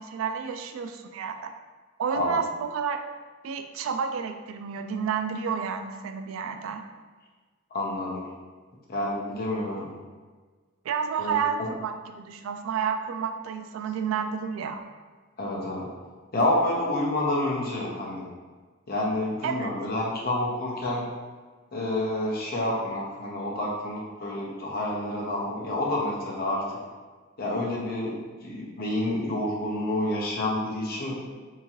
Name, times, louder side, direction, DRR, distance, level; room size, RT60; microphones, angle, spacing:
voice 1, 0.0-1.5 2.0-3.0 3.4-6.8 10.8-14.9 19.4-19.7, right 6 dB, 75° right, 8 dB, 0.3 m, -30 dB
voice 2, 7.7-8.2 8.9-9.9 11.2-11.7 15.4-15.9 16.3-18.3 18.9-21.0 21.7-26.6 27.4-28.2 28.4-31.2, left 1 dB, 45° left, -3 dB, 0.7 m, -28 dB
3.6 x 2.8 x 2.9 m, 1.4 s
head